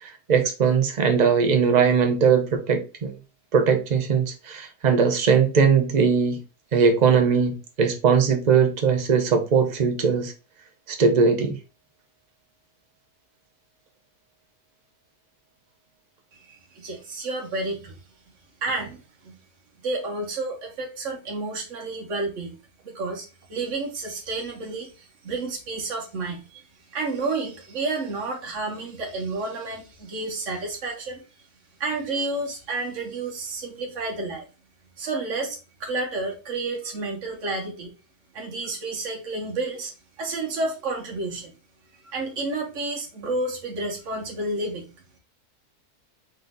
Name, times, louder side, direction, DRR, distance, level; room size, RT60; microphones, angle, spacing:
voice 1, 0.0-3.1 3.5-6.4 6.7-10.3 10.9-11.6, right 6 dB, 35° right, 0.8 m, -20 dB
voice 2, 16.3-18.0 18.6-19.3 19.8-22.6 22.8-26.6 26.9-31.3 31.8-34.4 35.0-37.9 38.3-39.9 40.2-41.5 42.1-44.9, right 3 dB, 55° right, 1.6 m, -30 dB
4.1 x 3.3 x 3.9 m
omnidirectional pair, 1.6 m